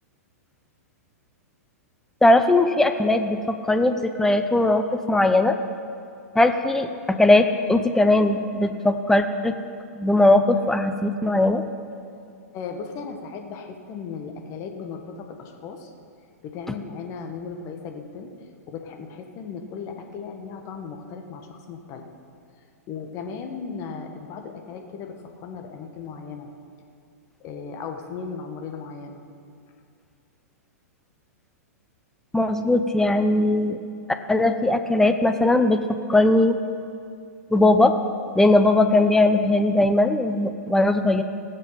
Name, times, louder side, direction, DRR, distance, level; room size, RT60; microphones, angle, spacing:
voice 1, 2.2-5.6 6.3-9.6 10.0-11.6 32.3-33.8 34.3-35.8 36.1-36.6 37.5-37.9 38.4-41.2, left 2 dB, 5° left, 8 dB, 0.7 m, -19 dB
voice 2, 12.5-15.9 16.4-18.3 18.7-22.1 22.9-26.5 27.4-29.2, left 5 dB, 35° left, 4 dB, 1.5 m, -36 dB
17.0 x 7.4 x 5.8 m, 2.4 s
figure-of-eight pair, 105°, 9 cm